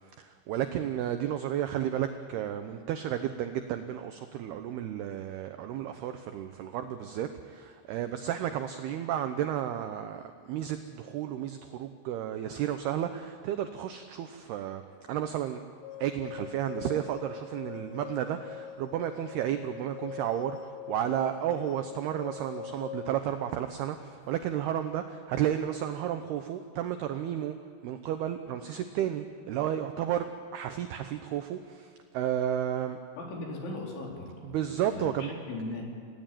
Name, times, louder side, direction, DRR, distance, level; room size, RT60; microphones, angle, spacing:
voice 1, 0.1-14.8 15.1-15.6 16.0-27.6 27.8-33.0 34.4-35.3, right 10 dB, 75° right, 8 dB, 2.4 m, -32 dB
sound 1, 15.8-24.6, left 9 dB, 90° left, 3.5 m, -44 dB
voice 2, 33.2-35.8, left 2 dB, 70° left, -1 dB, 6.1 m, -39 dB
29.5 x 18.0 x 9.1 m, 2.1 s
omnidirectional pair, 5.7 m